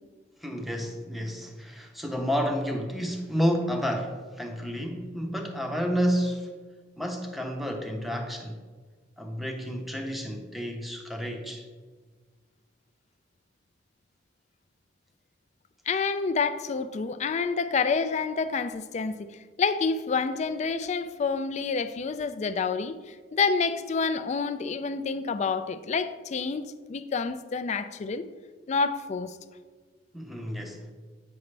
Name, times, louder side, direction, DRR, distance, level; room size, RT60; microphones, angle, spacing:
voice 1, 0.4-6.6 7.0-8.6 9.2-11.7 30.1-30.9, equal, ahead, 3 dB, 0.7 m, -30 dB
voice 2, 15.9-28.3 28.7-29.4, left 5 dB, 40° left, 12 dB, 0.3 m, -28 dB
8.5 x 5.9 x 3.3 m, 1.5 s
head